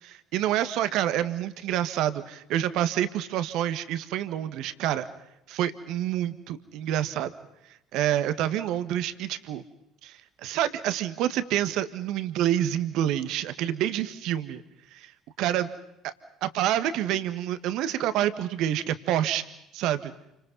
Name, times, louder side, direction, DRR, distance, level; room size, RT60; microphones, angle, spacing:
voice 1, 0.0-5.1 5.5-7.3 7.9-9.6 10.0-14.6 14.9-15.1 15.4-15.7 16.0-16.1 16.4-19.4 19.7-20.1, right 11 dB, 65° right, 12 dB, 1.6 m, -27 dB
29.5 x 25.5 x 5.5 m, 0.84 s
hypercardioid pair, 55°, 0 cm